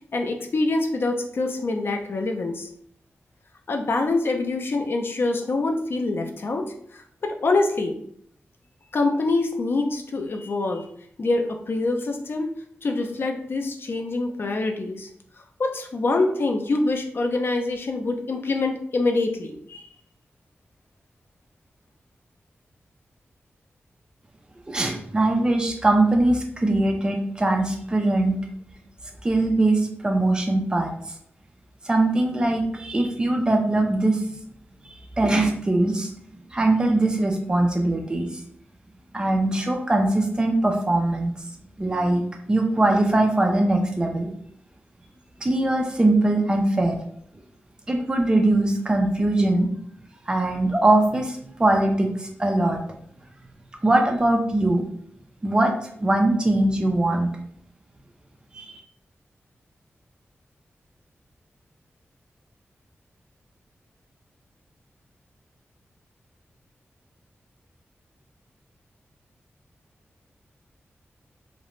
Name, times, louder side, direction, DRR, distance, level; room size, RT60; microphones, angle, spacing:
voice 1, 0.0-2.7 3.7-8.0 8.9-10.9 11.2-12.5 12.8-15.1 15.6-19.9, left 2 dB, 55° left, 4 dB, 0.4 m, -25 dB
voice 2, 24.7-28.4 29.2-30.9 31.8-34.2 34.9-36.1 36.5-38.4 39.1-41.3 41.8-42.2 42.5-44.3 45.4-47.0 47.9-49.7 50.3-52.8 53.8-54.8 55.4-55.7 56.0-57.3 58.5-58.8, right 2 dB, 20° right, 2 dB, 0.4 m, -21 dB
2.4 x 2.1 x 2.9 m, 0.65 s
wide cardioid pair, 130°, 5 cm